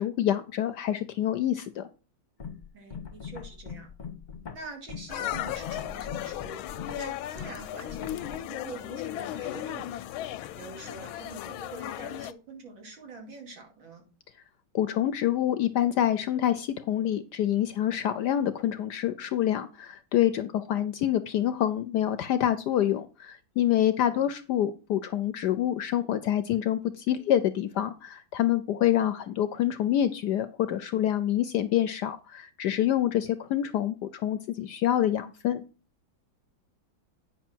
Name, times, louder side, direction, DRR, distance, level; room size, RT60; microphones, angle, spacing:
voice 1, 0.0-1.8 14.7-35.6, left 11 dB, 70° left, 12 dB, 1.0 m, -27 dB
sound 1, 2.4-8.4, left 6 dB, 30° left, 0.9 m, -41 dB
voice 2, 2.7-3.9 4.5-6.6 6.9-9.9 10.5-14.0 24.0-24.3, right 3 dB, 70° right, 1 dB, 3.4 m, -45 dB
sound 2, 5.1-12.3, left 13 dB, 90° left, 1.4 m, -36 dB
9.4 x 6.0 x 4.5 m, 0.34 s
omnidirectional pair, 2.2 m